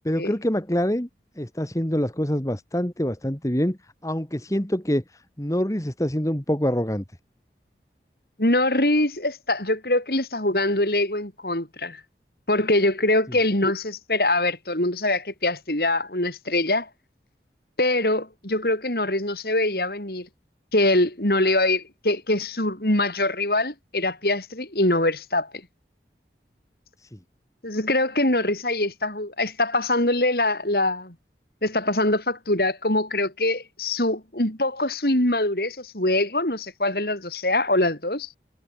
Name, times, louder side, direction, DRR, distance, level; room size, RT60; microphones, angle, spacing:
voice 1, 0.0-1.1 1.4-5.0 5.4-7.0 27.1-27.2, equal, 20° left, 1.7 m, -25 dB
voice 2, 8.4-12.0 12.5-16.9 17.8-20.3 20.7-25.5 27.6-31.1 31.6-38.3, left 2 dB, 60° left, 4.7 m, -23 dB
head